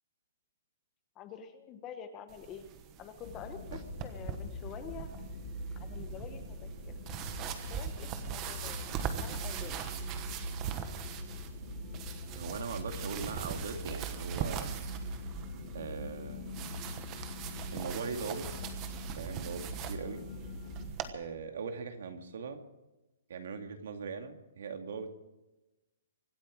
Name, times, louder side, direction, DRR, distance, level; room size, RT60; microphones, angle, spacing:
voice 1, 1.1-2.7 3.0-5.1 5.7-7.0 7.7-8.9 9.2-9.8, left 8 dB, 15° left, 9 dB, 1.0 m, -47 dB
sound 1, 2.3-21.1, right 9 dB, 20° right, 1.2 m, -42 dB
sound 2, 3.2-20.9, equal, 35° left, 3.6 m, -42 dB
voice 2, 12.3-14.7 15.6-16.5 17.7-18.5 19.1-20.2 21.1-22.6 23.3-25.1, right 5 dB, 55° right, 6 dB, 2.3 m, -40 dB
25.0 x 9.0 x 6.3 m, 1.0 s
hypercardioid pair, 175°, 0 cm